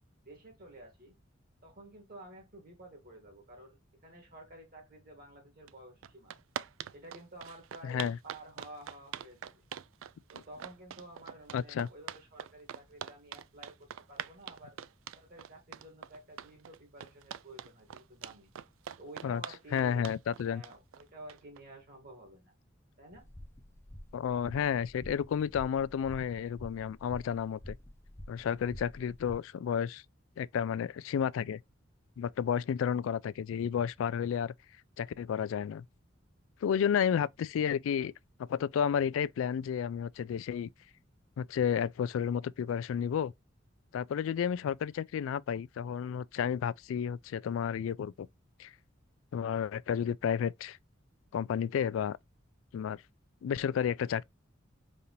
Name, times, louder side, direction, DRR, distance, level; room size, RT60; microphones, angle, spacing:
voice 1, 0.2-1.1 1.6-6.4 6.9-9.6 10.3-14.8 15.1-18.5 19.0-20.1 20.4-22.5 23.0-23.3, right 1 dB, 50° right, 1.5 m, -52 dB
sound 1, 5.7-5.8 6.0-21.6, right 9 dB, 80° right, 0.3 m, -43 dB
voice 2, 7.8-8.2 11.5-11.9 19.2-19.4 19.7-20.6 24.1-27.8 28.3-30.0 30.4-31.6 32.2-34.5 35.0-35.8 36.6-38.1 38.4-40.7 41.4-43.3 43.9-48.3 48.6-48.7 49.3-50.8 51.3-52.2 52.7-53.0 53.4-54.2, left 8 dB, 75° left, 0.3 m, -31 dB
sound 2, 23.1-29.4, equal, 10° left, 0.7 m, -49 dB
5.2 x 2.8 x 2.9 m
head